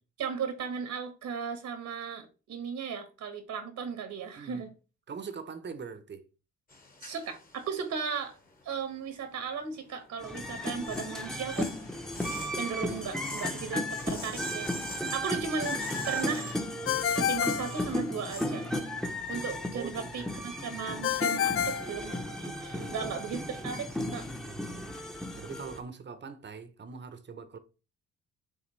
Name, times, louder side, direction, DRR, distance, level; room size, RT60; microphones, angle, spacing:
voice 1, 0.2-4.7 7.0-8.3 8.6-11.7 12.5-14.7 15.1-16.5 17.1-18.7 19.3-22.1 22.4-24.3, right 6 dB, 70° right, 1.4 m, -36 dB
voice 2, 4.4-4.7 5.1-6.2 19.7-20.4 22.7-23.3 24.4-25.0 25.4-27.6, right 5 dB, 35° right, 0.9 m, -43 dB
sound 1, 6.7-9.1 9.5-18.5, left 2 dB, 30° left, 1.3 m, -45 dB
sound 2, 10.2-25.8, left 1 dB, ahead, 0.9 m, -35 dB
Ringtone, 16.9-18.5 21.0-22.7, left 10 dB, 45° left, 0.4 m, -30 dB
9.3 x 3.4 x 3.2 m
cardioid pair, 90°, 30 cm